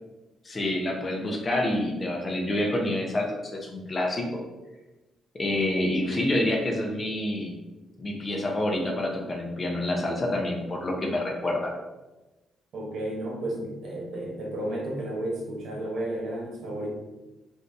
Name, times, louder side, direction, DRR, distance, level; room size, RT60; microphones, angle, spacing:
voice 1, 0.4-4.4 5.3-7.6 8.0-11.7, left 1 dB, 30° left, 0 dB, 0.7 m, -27 dB
voice 2, 12.7-16.9, right 1 dB, 60° right, -2 dB, 1.0 m, -32 dB
2.7 x 2.6 x 3.4 m, 1.1 s
cardioid pair, 90°, 0 cm